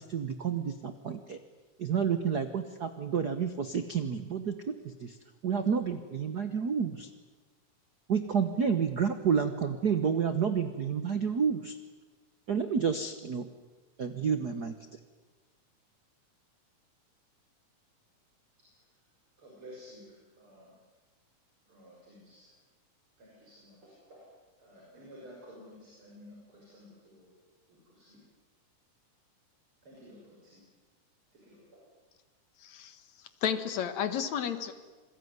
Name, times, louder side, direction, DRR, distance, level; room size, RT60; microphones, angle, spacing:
voice 1, 0.0-1.4 1.8-5.2 5.4-7.1 8.1-11.8 12.5-13.5 14.0-14.7, right 6 dB, 65° right, 9 dB, 0.9 m, -30 dB
voice 2, 19.4-20.7 21.7-22.5 23.2-24.3 24.6-27.3 27.7-28.2 29.8-30.6 31.3-31.9, equal, 40° right, -3 dB, 6.9 m, -53 dB
voice 3, 32.6-33.0 33.4-34.7, left 8 dB, 65° left, 10 dB, 2.7 m, -32 dB
27.5 x 21.5 x 9.6 m, 1.3 s
omnidirectional pair, 3.6 m